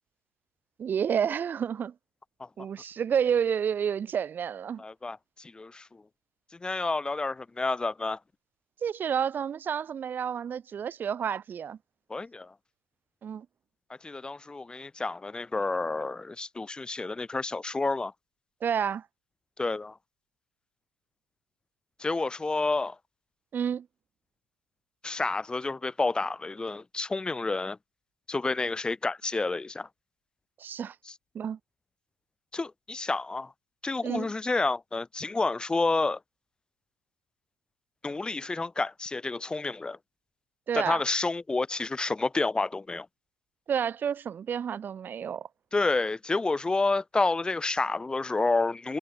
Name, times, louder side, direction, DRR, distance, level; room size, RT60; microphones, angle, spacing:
voice 1, 0.8-1.9 2.6-4.8 8.8-11.8 13.2-13.5 18.6-19.1 23.5-23.9 30.6-31.0 31.3-31.6 34.0-34.3 40.7-41.0 43.7-45.5, right 8 dB, 35° right, 0.4 m, -30 dB
voice 2, 4.8-6.0 6.6-8.2 12.1-12.5 14.0-18.1 19.6-19.9 22.0-23.0 25.0-27.8 28.3-29.9 32.5-33.5 33.8-36.2 38.0-40.0 40.7-43.1 45.7-49.0, left 3 dB, 15° left, 0.6 m, -29 dB
supercardioid pair, 100°, 6 cm